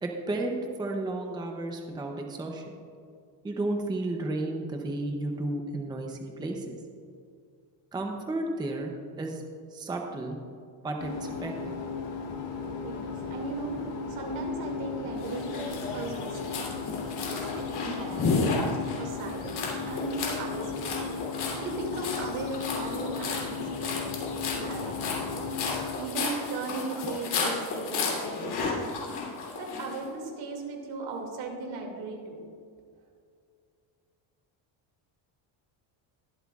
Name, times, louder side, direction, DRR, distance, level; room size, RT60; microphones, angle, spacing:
voice 1, 0.0-2.6 3.4-6.7 7.9-8.9 9.2-9.4 9.7-10.4 10.8-11.7 18.1-18.2, right 2 dB, 10° right, 2 dB, 0.6 m, -33 dB
sound 1, 11.0-25.9, left 5 dB, 70° left, 2.0 m, -36 dB
voice 2, 12.8-16.6 17.3-18.6 19.0-21.0 21.6-24.1 24.4-25.3 26.0-28.8 29.5-32.4, right 3 dB, 75° right, 2 dB, 2.4 m, -37 dB
sound 2, 15.2-30.0, left 4 dB, 55° left, 3.0 m, -33 dB
22.0 x 7.9 x 2.4 m, 2.3 s
cardioid pair, 170°, 48 cm